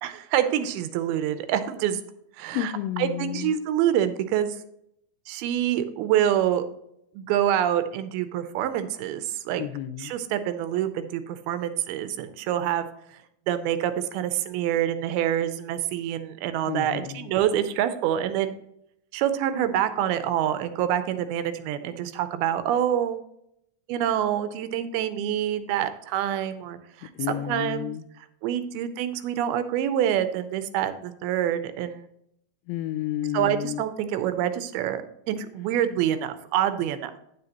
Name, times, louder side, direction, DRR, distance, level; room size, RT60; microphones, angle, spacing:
voice 1, 0.0-2.0 2.4-2.7 3.0-4.6 5.3-6.6 7.2-9.6 10.0-12.9 13.5-18.5 19.1-23.2 23.9-27.9 28.4-32.1 33.3-37.1, right 10 dB, 85° right, 10 dB, 2.5 m, -26 dB
voice 2, 2.5-3.6 9.6-10.1 16.7-17.3 27.2-28.0 32.7-33.8, left 13 dB, 85° left, 12 dB, 2.3 m, -31 dB
9.8 x 7.7 x 2.9 m, 0.75 s
omnidirectional pair, 4.4 m